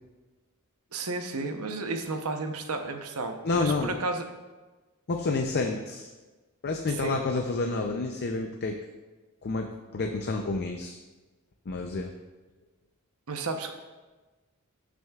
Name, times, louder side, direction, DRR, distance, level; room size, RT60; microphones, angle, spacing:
voice 1, 0.9-4.2 7.0-7.2 13.3-13.7, right 3 dB, 70° right, 5 dB, 0.8 m, -32 dB
voice 2, 3.4-4.0 5.1-6.1 6.6-8.8 9.4-11.0 11.7-12.1, left 3 dB, 50° left, 3 dB, 0.5 m, -29 dB
14.5 x 6.1 x 2.4 m, 1.2 s
head